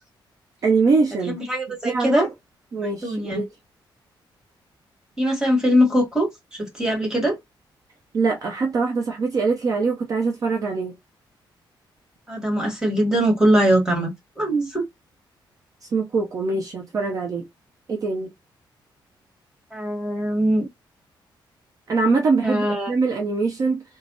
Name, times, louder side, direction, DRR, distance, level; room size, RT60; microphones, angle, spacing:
voice 1, 0.6-1.4 1.7-2.3 2.7-3.5 8.1-10.9 15.8-17.5 17.9-18.3 21.9-23.8, right 4 dB, 40° right, 0.7 m, -23 dB
voice 2, 1.3-2.3 3.0-3.4 5.2-7.4 12.3-14.8 19.7-20.7 22.4-22.9, equal, 5° right, 1.6 m, -21 dB
3.4 x 2.1 x 3.9 m
wide cardioid pair, 170°, 9 cm